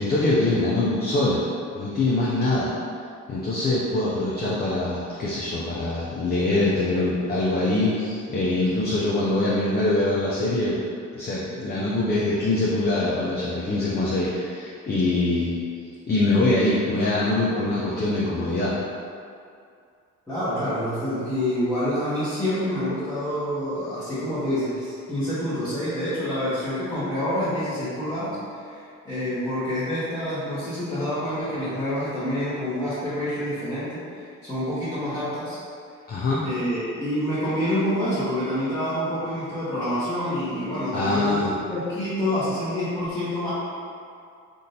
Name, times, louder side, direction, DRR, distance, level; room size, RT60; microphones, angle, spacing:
voice 1, 0.0-1.4 1.7-2.7 3.3-10.8 11.1-15.6 16.1-18.7 36.1-36.5 40.9-41.6, left 2 dB, 35° left, -6 dB, 0.5 m, -23 dB
voice 2, 20.3-34.0 34.4-35.6 36.4-41.4 41.7-43.5, equal, 10° left, -14 dB, 1.1 m, -27 dB
3.6 x 2.5 x 2.7 m, 2.4 s
cardioid pair, 90°, 30 cm